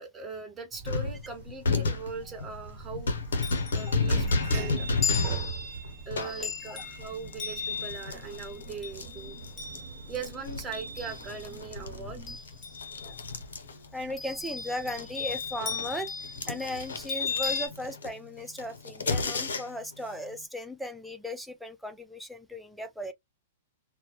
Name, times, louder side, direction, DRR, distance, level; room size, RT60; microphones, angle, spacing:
voice 1, 0.0-3.1 3.7-4.9 6.1-9.4 10.1-12.4, right 4 dB, 20° right, 1.0 m, -40 dB
sound 1, 0.7-12.4, right 6 dB, 45° right, 1.0 m, -43 dB
sound 2, 0.9-9.8 10.1-14.1 14.4-19.9, left 3 dB, 80° left, 0.7 m, -32 dB
Chime, 3.2-11.7 12.0-13.4 14.2-17.7, left 6 dB, 25° left, 0.8 m, -37 dB
voice 2, 13.9-23.1, left 1 dB, ahead, 0.4 m, -37 dB
2.1 x 2.1 x 2.9 m
hypercardioid pair, 115°, 0 cm